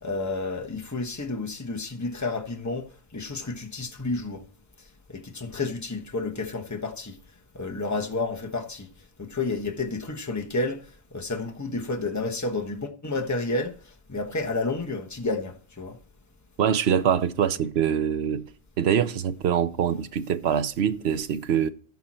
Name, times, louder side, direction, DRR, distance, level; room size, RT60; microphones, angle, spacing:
voice 1, 0.0-2.9 3.1-4.4 5.1-7.2 7.5-8.9 9.2-16.0, left 3 dB, 15° left, 1.2 m, -30 dB
voice 2, 16.6-18.5 18.8-21.7, right 8 dB, 85° right, 1.0 m, -24 dB
15.0 x 5.7 x 4.3 m
omnidirectional pair, 1.1 m